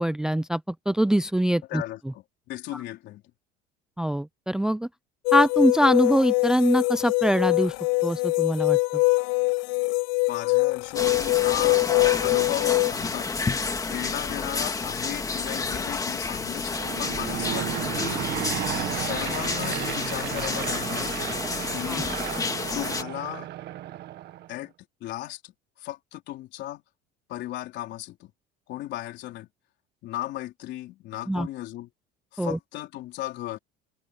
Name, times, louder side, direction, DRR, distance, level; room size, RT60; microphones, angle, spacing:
voice 1, 0.0-1.8 2.7-2.8 4.0-4.9 5.3-7.7 8.0-9.0 21.9-22.0 31.3-31.5 32.4-32.6, equal, 5° right, 0.5 m, -23 dB
voice 2, 1.7-3.2 10.3-18.4 18.9-21.2 21.7-22.2 22.7-23.5 24.5-24.7 25.0-26.8 27.3-28.3 28.7-29.5 30.0-31.9 32.3-33.6, left 15 dB, 60° left, 3.9 m, -36 dB
sound 1, 5.3-12.9, left 29 dB, 90° left, 0.5 m, -23 dB
sound 2, 10.9-23.0, left 4 dB, 15° left, 2.0 m, -30 dB
Aircraft / Engine, 16.6-24.6, right 13 dB, 55° right, 1.8 m, -33 dB
cardioid pair, 135°, 21 cm